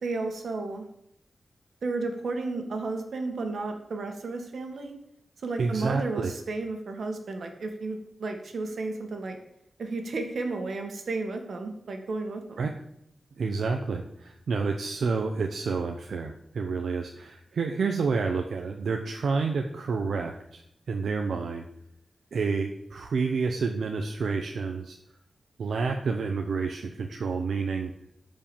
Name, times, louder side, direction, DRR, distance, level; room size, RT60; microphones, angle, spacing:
voice 1, 0.0-0.9 1.8-4.9 5.4-9.4 9.8-12.7, right 3 dB, 70° right, 4 dB, 1.9 m, -33 dB
voice 2, 5.6-6.3 12.6-12.7 13.4-20.6 20.9-21.6 22.3-25.0 25.6-27.9, right 4 dB, 90° right, 3 dB, 0.9 m, -29 dB
14.0 x 5.5 x 7.2 m, 0.76 s
wide cardioid pair, 170°, 0 cm